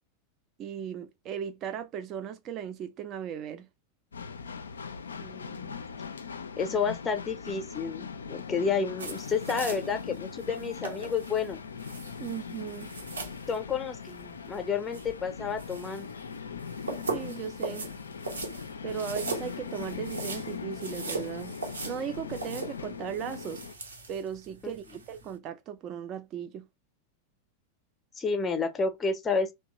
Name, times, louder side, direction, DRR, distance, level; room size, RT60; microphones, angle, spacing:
voice 1, 0.6-3.7 12.2-12.9 16.9-17.9 18.8-21.6 21.8-23.7 24.1-26.7, right 8 dB, 35° right, 0.4 m, -37 dB
sound 1, 4.1-23.7, left 6 dB, 70° left, 0.3 m, -40 dB
voice 2, 5.2-5.8 6.6-11.6 13.5-16.1 24.6-24.7 28.2-29.5, left 5 dB, 15° left, 0.6 m, -30 dB
sound 2, 9.0-25.3, right 3 dB, 70° right, 0.8 m, -40 dB
2.9 x 2.2 x 2.8 m
figure-of-eight pair, 90°, 0 cm